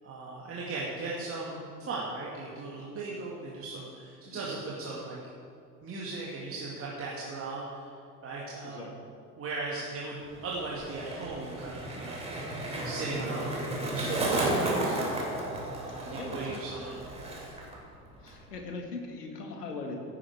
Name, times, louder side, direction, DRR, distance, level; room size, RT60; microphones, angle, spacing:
voice 1, 0.0-5.2 5.8-7.9 8.2-9.0 9.4-12.2 12.8-15.0 15.7-17.3, right 3 dB, 30° right, -5 dB, 2.0 m, -38 dB
Skateboard, 10.2-17.8 18.0-18.5, right 1 dB, 15° right, 3.0 m, -33 dB
voice 2, 15.8-16.8 18.2-20.0, left 3 dB, 75° left, 2 dB, 1.9 m, -40 dB
16.5 x 9.7 x 3.6 m, 2.3 s
figure-of-eight pair, 70°, 48 cm